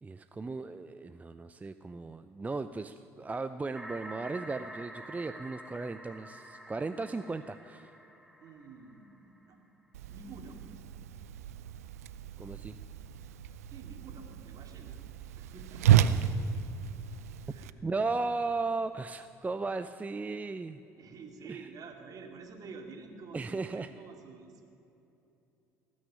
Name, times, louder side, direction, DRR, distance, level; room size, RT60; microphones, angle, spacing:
voice 1, 0.0-7.9 12.4-12.8 17.8-20.8 21.5-21.7 23.3-23.9, right 3 dB, 20° right, 10 dB, 0.5 m, -36 dB
sound 1, 3.7-9.4, right 1 dB, ahead, 1.8 m, -48 dB
voice 2, 8.4-9.6 10.1-10.7 13.7-15.0 15.3-15.9 17.5-18.1 21.0-24.7, right 4 dB, 50° right, 4 dB, 2.4 m, -49 dB
Whoosh swoosh swish, 9.9-17.7, right 10 dB, 90° right, 0.5 m, -31 dB
18.5 x 6.3 x 9.9 m, 2.9 s
hypercardioid pair, 65°, 8 cm